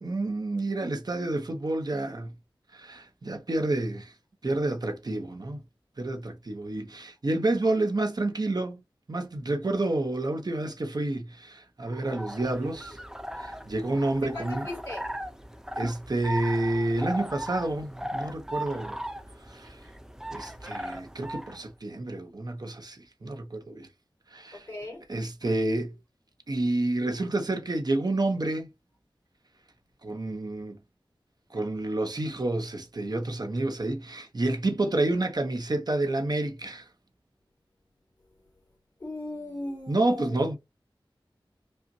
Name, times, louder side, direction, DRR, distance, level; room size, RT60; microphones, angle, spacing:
voice 1, 0.0-2.3 2.7-4.1 4.4-5.6 6.0-8.8 9.1-13.0 13.4-14.7 15.8-19.0 19.5-19.8 20.3-23.9 24.3-24.7 25.1-26.0 26.5-28.7 30.0-30.8 31.5-36.8 39.9-40.6, right 2 dB, 50° right, 0.8 m, -29 dB
sound 1, 11.9-21.6, equal, 5° right, 0.5 m, -38 dB
voice 2, 14.2-15.0 24.5-25.0 39.0-40.4, left 2 dB, 45° left, 2.1 m, -38 dB
5.3 x 2.1 x 2.7 m
wide cardioid pair, 70°, 9 cm